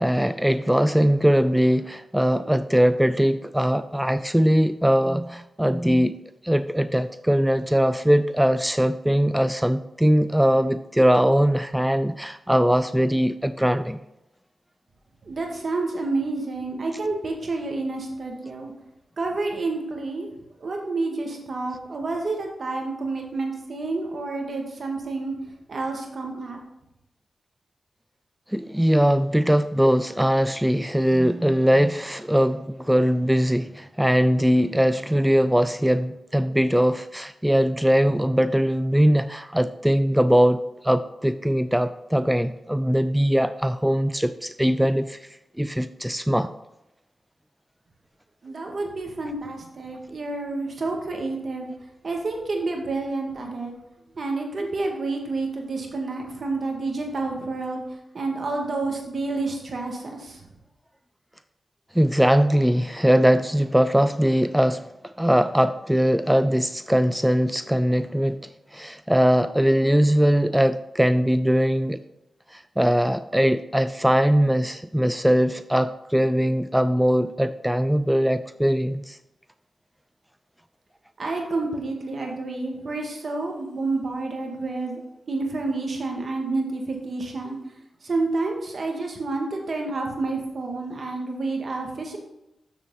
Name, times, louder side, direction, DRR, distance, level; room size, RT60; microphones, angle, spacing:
voice 1, 0.0-6.2 6.4-14.0 28.5-45.3 45.6-46.5 61.9-72.0 72.5-79.2, equal, 5° right, 12 dB, 0.4 m, -21 dB
voice 2, 15.3-18.7 19.2-20.3 20.6-25.3 25.7-26.6 48.4-51.7 52.0-53.7 54.2-57.8 58.1-60.5 81.2-85.0 85.3-87.6 88.0-92.2, right 3 dB, 60° right, 1 dB, 2.0 m, -29 dB
7.3 x 7.0 x 4.0 m, 0.90 s
supercardioid pair, 40°, 0 cm